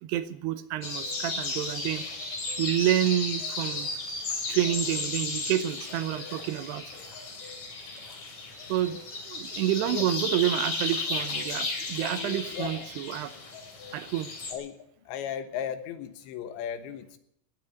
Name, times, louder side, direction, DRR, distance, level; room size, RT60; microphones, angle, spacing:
voice 1, 0.0-3.9 4.5-6.8 8.7-9.0 9.3-13.3 13.9-14.3, right 12 dB, 75° right, 11 dB, 2.8 m, -29 dB
sound 1, 0.8-14.5, left 3 dB, 45° left, 3.8 m, -34 dB
voice 2, 12.2-12.9 14.5-14.8 15.1-17.2, left 9 dB, 85° left, 9 dB, 3.6 m, -36 dB
18.5 x 7.7 x 9.6 m, 0.72 s
omnidirectional pair, 5.0 m